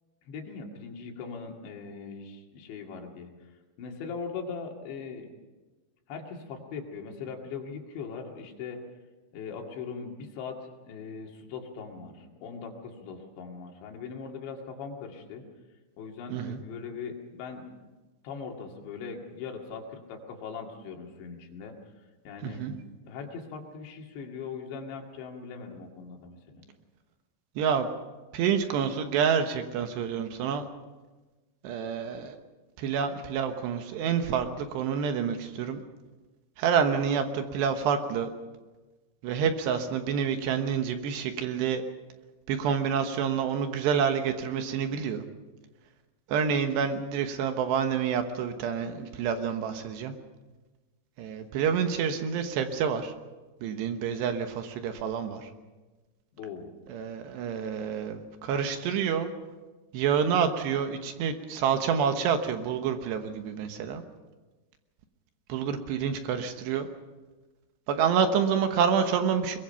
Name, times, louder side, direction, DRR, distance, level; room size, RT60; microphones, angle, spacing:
voice 1, 0.3-3.3 3.8-5.3 6.1-8.8 9.3-15.4 16.0-17.7 18.2-21.8 22.3-22.7 23.0-26.6 56.3-56.7, left 5 dB, 70° left, 2 dB, 4.4 m, -40 dB
voice 2, 22.4-22.7 27.6-27.9 28.3-30.7 31.6-32.4 32.8-35.8 36.6-38.3 39.2-41.8 42.5-45.2 46.3-50.1 51.2-53.1 53.6-55.5 56.9-59.3 59.9-64.0 65.5-66.9 67.9-69.6, right 7 dB, 70° right, 7 dB, 3.2 m, -28 dB
22.0 x 22.0 x 5.7 m, 1.2 s
omnidirectional pair, 5.4 m